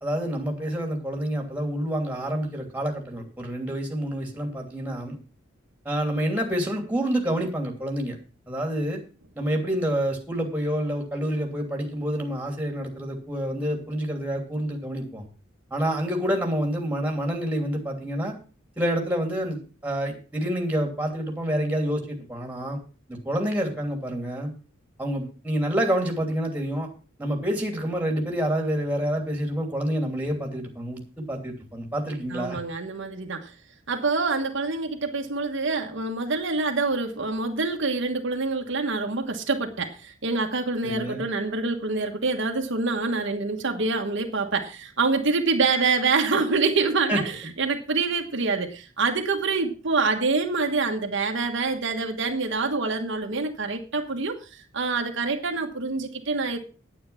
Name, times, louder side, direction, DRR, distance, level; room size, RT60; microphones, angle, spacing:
voice 1, 0.0-5.2 5.8-8.2 8.5-9.0 9.3-15.2 15.7-18.3 18.8-22.8 23.1-24.5 25.0-26.9 27.2-32.6 40.8-41.2 47.1-47.2, equal, 10° right, 2 dB, 3.0 m, -28 dB
voice 2, 32.3-33.5 33.9-56.6, right 4 dB, 65° right, 3 dB, 1.4 m, -26 dB
9.5 x 9.2 x 5.7 m, 0.36 s
head